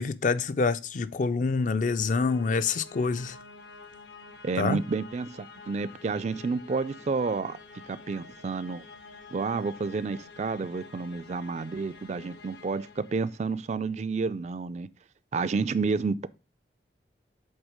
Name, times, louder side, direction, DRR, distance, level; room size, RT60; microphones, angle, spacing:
voice 1, 0.0-3.4 4.6-4.8, left 4 dB, 45° left, 0.4 m, -26 dB
sound 1, 0.8-13.9, left 4 dB, 75° left, 0.8 m, -49 dB
voice 2, 4.4-7.6 7.9-8.8 9.3-14.9 15.3-16.3, right 4 dB, 40° right, 0.3 m, -30 dB
8.0 x 3.7 x 4.9 m
head